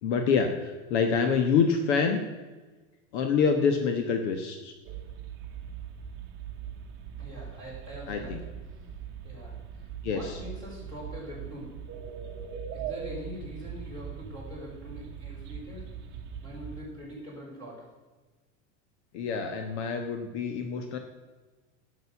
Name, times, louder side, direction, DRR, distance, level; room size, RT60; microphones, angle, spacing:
voice 1, 0.0-2.2 3.1-4.7 8.1-8.4 10.0-10.4 19.1-21.0, left 5 dB, 65° left, 6 dB, 1.3 m, -26 dB
sound 1, 4.8-16.8, right 7 dB, 30° right, 1.2 m, -41 dB
voice 2, 7.2-8.9 9.2-11.7 12.7-15.8 16.4-17.9, equal, 10° left, -5 dB, 4.3 m, -43 dB
11.5 x 6.7 x 7.1 m, 1.2 s
supercardioid pair, 165°, 37 cm